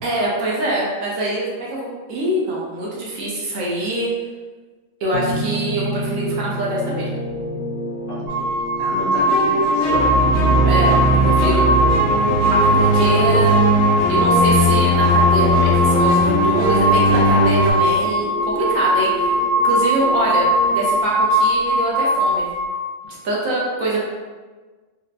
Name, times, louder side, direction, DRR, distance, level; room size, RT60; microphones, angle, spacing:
voice 1, 0.0-4.1 5.0-7.2 10.6-11.9 12.5-13.6 14.1-19.3 19.6-22.5 23.1-24.0, right 1 dB, 75° right, -5 dB, 1.2 m, -24 dB
sound 1, 5.1-20.8, equal, 45° right, 0.8 m, -29 dB
voice 2, 8.1-10.1, equal, 15° left, -11 dB, 0.9 m, -31 dB
sound 2, 8.3-22.7, equal, 50° left, 1.6 m, -20 dB
sound 3, 9.2-17.7, equal, 75° left, 1.2 m, -18 dB
4.1 x 2.1 x 2.6 m, 1.4 s
omnidirectional pair, 1.4 m